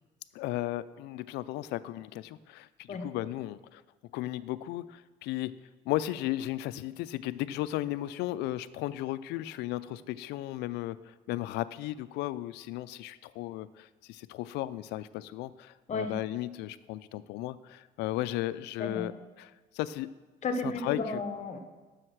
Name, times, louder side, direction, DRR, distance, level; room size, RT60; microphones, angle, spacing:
voice 1, 0.3-3.8 4.1-5.5 5.9-19.1 19.4-20.1 20.6-21.2, left 15 dB, 85° left, 17 dB, 0.4 m, -35 dB
voice 2, 20.4-21.6, left 3 dB, 45° left, 7 dB, 1.1 m, -33 dB
7.8 x 6.5 x 6.0 m, 1.3 s
cardioid pair, 110°, 17 cm